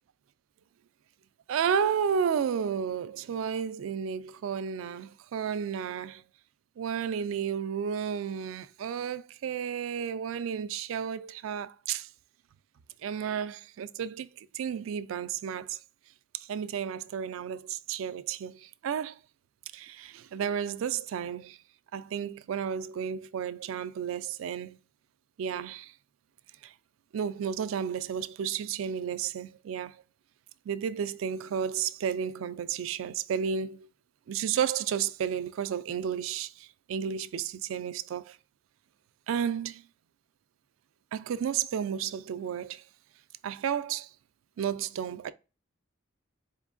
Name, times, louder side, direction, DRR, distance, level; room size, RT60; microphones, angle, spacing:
voice 1, 1.5-6.2 6.8-12.1 13.0-15.8 16.3-19.2 19.7-21.6 21.9-24.8 25.4-25.9 26.6-26.7 27.1-30.0 30.7-33.9 34.3-38.4 39.3-39.8 41.1-42.8 43.4-44.1 44.6-45.3, right 7 dB, 80° right, 0.3 m, -32 dB
4.4 x 3.0 x 2.4 m
head